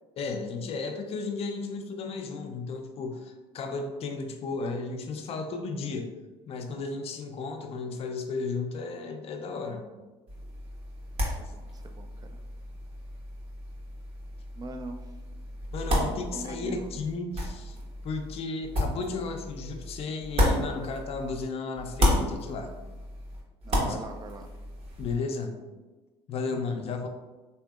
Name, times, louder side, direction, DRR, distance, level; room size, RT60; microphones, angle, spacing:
voice 1, 0.2-6.1 6.5-9.9 15.7-17.8 18.0-22.7 23.7-24.0 25.0-25.6 26.3-27.1, left 4 dB, 45° left, 5 dB, 0.5 m, -34 dB
sound 1, 10.3-21.5 21.7-25.2, equal, 45° right, 1.1 m, -32 dB
voice 2, 11.2-12.4 14.6-15.1 16.3-16.9 23.6-24.5, right 3 dB, 25° right, 7 dB, 0.4 m, -42 dB
3.4 x 2.7 x 2.3 m, 1.2 s
hypercardioid pair, 70°, 15 cm